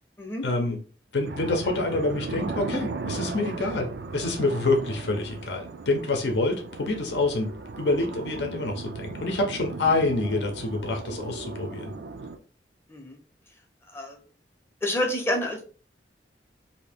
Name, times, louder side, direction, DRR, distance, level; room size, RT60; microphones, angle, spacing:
voice 1, 0.4-0.8 1.1-7.5 7.8-11.9, left 2 dB, 75° left, 3 dB, 0.7 m, -27 dB
sound 1, 1.2-12.4, right 3 dB, 70° right, 0.4 m, -36 dB
voice 2, 14.8-15.6, left 1 dB, 15° left, 1 dB, 0.6 m, -28 dB
2.7 x 2.7 x 3.4 m, 0.39 s
head